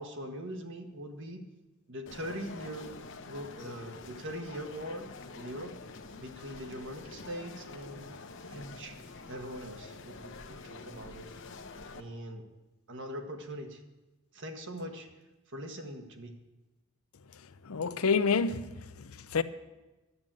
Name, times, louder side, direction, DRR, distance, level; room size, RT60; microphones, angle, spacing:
voice 1, 0.0-1.4 1.9-2.9 3.2-5.1 5.3-5.7 6.1-11.3 11.9-12.4 12.9-13.8 14.3-15.1 15.5-16.3, equal, 60° right, 1.5 m, -42 dB
sound 1, 2.1-12.0, left 3 dB, 60° left, 0.9 m, -47 dB
voice 2, 17.6-19.4, left 5 dB, 85° left, 0.6 m, -29 dB
11.0 x 7.6 x 8.9 m
head